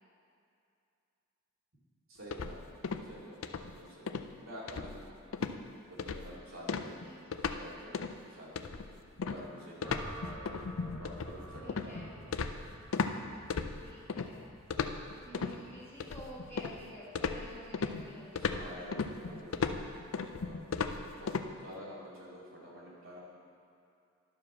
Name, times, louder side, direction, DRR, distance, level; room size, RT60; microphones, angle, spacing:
voice 1, 2.1-2.7 3.0-5.1 5.9-7.0 7.6-8.9 9.2-9.9 11.0-12.3 15.3-15.5 18.4-19.9 20.2-20.7 20.9-23.2, equal, 80° right, -6 dB, 2.6 m, -49 dB
sound 1, 2.3-3.1 3.4-3.7 4.1-4.3 4.7-5.1 5.3-5.6 6.0-6.3 6.7-7.6 7.9-8.2 8.6-13.2 13.5-14.3 14.7-15.6 16.0-16.8 17.2-21.5, left 5 dB, 90° left, 0.5 m, -36 dB
sound 2, 9.8-18.1, right 1 dB, 5° right, 1.4 m, -50 dB
voice 2, 11.6-12.2 13.8-14.5 15.2-18.7, equal, 10° left, -8 dB, 2.2 m, -50 dB
11.5 x 5.0 x 6.0 m, 2.6 s
head